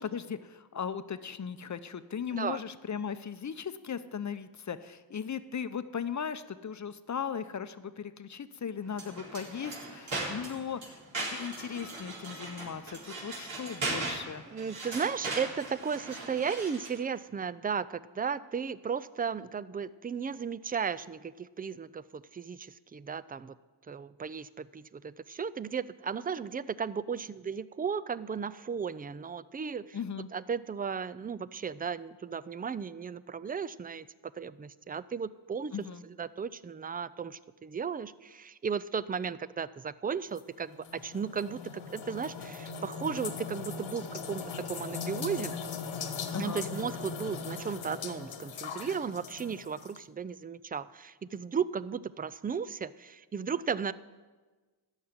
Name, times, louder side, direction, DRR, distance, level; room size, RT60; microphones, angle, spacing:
voice 1, 0.0-14.4 29.9-30.3 35.7-36.0 46.3-46.7, left 7 dB, 35° left, 12 dB, 0.7 m, -37 dB
sound 1, 8.9-17.0, right 2 dB, 70° right, 4.3 m, -39 dB
voice 2, 14.5-23.5 23.9-30.0 30.3-34.1 34.4-35.8 36.0-45.6 46.4-53.9, right 6 dB, 20° right, 17 dB, 0.4 m, -35 dB
sound 2, 40.4-50.0, left 5 dB, 70° left, 1.4 m, -39 dB
13.0 x 6.4 x 9.5 m, 1.3 s
cardioid pair, 60°, 48 cm